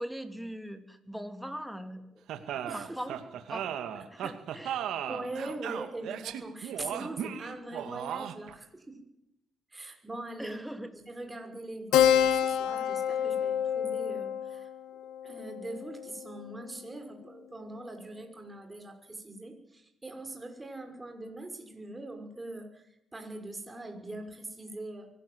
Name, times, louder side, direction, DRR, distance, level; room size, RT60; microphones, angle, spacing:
voice 1, 0.0-2.2 2.5-3.1 3.5-3.8 4.1-4.8 10.4-10.9, equal, ahead, 7 dB, 3.3 m, -40 dB
sound 1, 2.3-8.5, right 10 dB, 80° right, 2.2 m, -36 dB
voice 2, 2.7-3.2 4.0-4.1 5.1-9.0 9.7-10.6 10.9-14.7 15.2-25.1, right 2 dB, 15° right, 4 dB, 6.0 m, -42 dB
Keyboard (musical), 11.9-16.9, left 9 dB, 85° left, 1.6 m, -28 dB
24.0 x 18.0 x 8.1 m, 0.83 s
cardioid pair, 90°, 0 cm